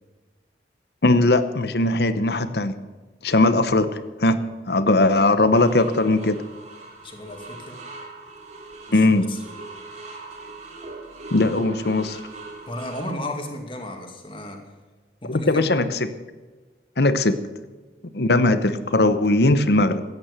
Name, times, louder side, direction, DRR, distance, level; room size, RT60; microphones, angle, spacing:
voice 1, 1.0-2.8 3.2-6.4 8.9-9.3 11.3-12.2 15.2-16.1 17.0-17.4 18.1-20.0, left 2 dB, 65° left, 12 dB, 0.9 m, -19 dB
sound 1, 5.5-13.1, right 3 dB, 40° right, 2.6 m, -40 dB
voice 2, 7.0-7.8 8.9-9.4 12.7-14.6 15.2-15.9, left 1 dB, 30° left, 3 dB, 2.4 m, -34 dB
15.0 x 9.5 x 8.1 m, 1.3 s
head